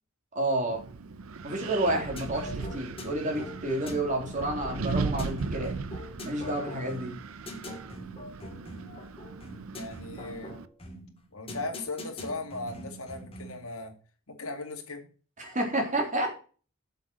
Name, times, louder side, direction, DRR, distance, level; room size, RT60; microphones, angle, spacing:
voice 1, 0.4-0.8 1.4-5.7 6.2-7.1 15.4-16.3, right 1 dB, 35° right, 1 dB, 3.3 m, -30 dB
Wind, 0.7-10.7, right 4 dB, 70° right, 0.6 m, -37 dB
sound 1, 1.8-13.7, equal, 25° left, 2.9 m, -43 dB
voice 2, 9.7-10.6 11.3-13.9 14.3-15.1, left 3 dB, 70° left, 4 dB, 2.2 m, -37 dB
7.8 x 7.1 x 6.3 m, 0.39 s
head